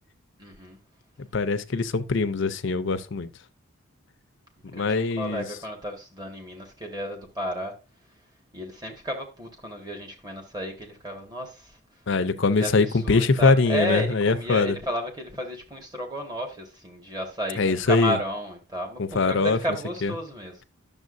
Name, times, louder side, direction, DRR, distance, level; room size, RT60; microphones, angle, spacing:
voice 1, 0.4-0.8 4.7-7.7 8.5-11.8 12.6-20.6, equal, 20° right, 1.7 m, -33 dB
voice 2, 1.3-3.3 4.7-5.4 12.1-14.8 17.6-18.2 19.0-19.6 20.0-20.1, left 3 dB, 55° left, 0.6 m, -22 dB
10.5 x 7.0 x 2.6 m
head